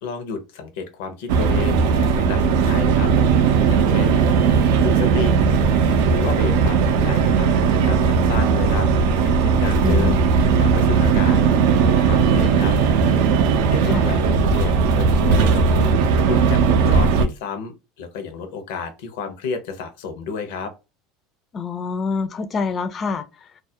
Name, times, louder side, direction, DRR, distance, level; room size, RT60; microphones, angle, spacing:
voice 1, 0.0-3.1 3.6-4.2 4.5-5.4 6.1-8.9 9.2-10.2 10.6-11.4 11.8-12.8 13.3-16.0 16.2-20.7, left 5 dB, 75° left, 0.6 m, -31 dB
sound 1, 1.3-17.3, right 5 dB, 75° right, 0.4 m, -17 dB
voice 2, 9.8-10.3 13.9-14.0 21.5-23.2, left 4 dB, 35° left, 0.4 m, -26 dB
2.3 x 2.0 x 2.7 m
supercardioid pair, 100°, 0 cm